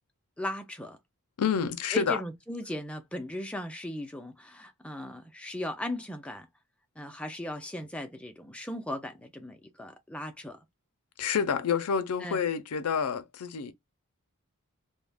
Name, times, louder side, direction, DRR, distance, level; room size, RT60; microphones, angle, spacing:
voice 1, 0.4-1.0 1.9-6.5 7.0-10.6 12.2-12.4, left 1 dB, 5° left, 0.4 m, -37 dB
voice 2, 1.4-2.2 11.2-13.7, left 6 dB, 85° left, 0.5 m, -28 dB
2.4 x 2.1 x 3.3 m
head